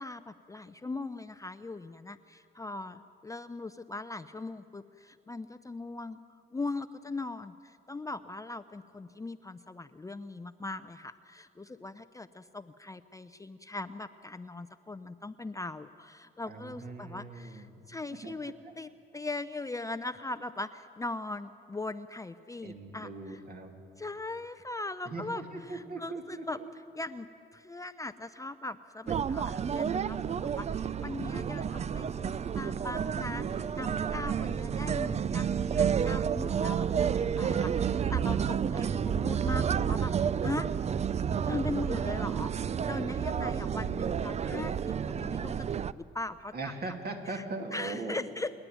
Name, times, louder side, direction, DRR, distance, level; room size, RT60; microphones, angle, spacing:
voice 1, 0.0-6.2 6.5-23.4 24.0-26.6 26.9-30.7 31.0-40.1 40.4-40.7 41.4-46.5 47.3-47.4 47.7-48.5, left 2 dB, 15° left, 11 dB, 0.5 m, -40 dB
voice 2, 16.5-17.7 18.2-18.7 22.6-23.7 25.0-26.7 43.4-44.3 46.5-48.3, right 3 dB, 50° right, 3 dB, 2.8 m, -40 dB
sound 1, 29.1-45.9, right 7 dB, 35° right, 0.4 m, -30 dB
28.5 x 10.5 x 9.3 m, 2.5 s
cardioid pair, 90°, 20 cm